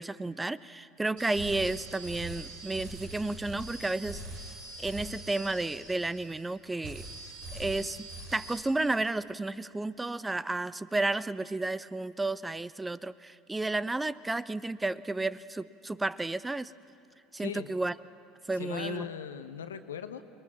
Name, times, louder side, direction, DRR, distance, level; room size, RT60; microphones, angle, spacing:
voice 1, 0.0-4.2 4.8-7.1 7.5-16.7 17.3-17.9 18.5-19.1, right 2 dB, 15° right, 18 dB, 0.6 m, -32 dB
sound 1, 1.2-6.5 6.8-8.6, right 1 dB, 70° right, 6.5 m, -43 dB
voice 2, 17.4-17.7 18.5-20.2, left 7 dB, 80° left, 10 dB, 1.1 m, -39 dB
29.0 x 21.5 x 7.3 m, 2.7 s
figure-of-eight pair, 70°, 0 cm